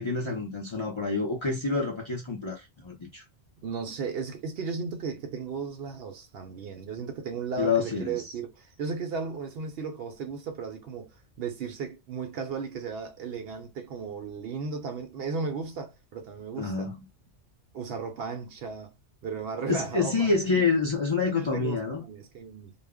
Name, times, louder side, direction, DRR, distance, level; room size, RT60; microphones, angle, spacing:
voice 1, 0.0-3.2 7.6-8.2 16.6-17.0 19.7-22.0, left 4 dB, 40° left, 0.4 m, -27 dB
voice 2, 3.6-16.9 17.7-18.9 19.2-20.6 21.3-22.7, right 5 dB, 65° right, 0.7 m, -35 dB
2.2 x 2.0 x 3.4 m
omnidirectional pair, 1.2 m